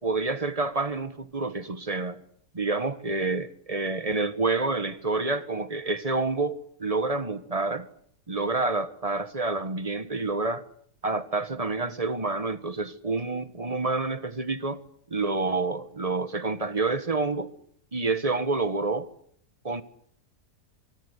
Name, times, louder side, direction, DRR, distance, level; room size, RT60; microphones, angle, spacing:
voice 1, 0.0-2.2 2.5-7.9 8.3-10.6 11.0-14.8 15.1-17.5 17.9-19.1 19.6-19.8, right 3 dB, 25° right, 1.3 m, -28 dB
24.5 x 24.5 x 8.2 m
omnidirectional pair, 1.7 m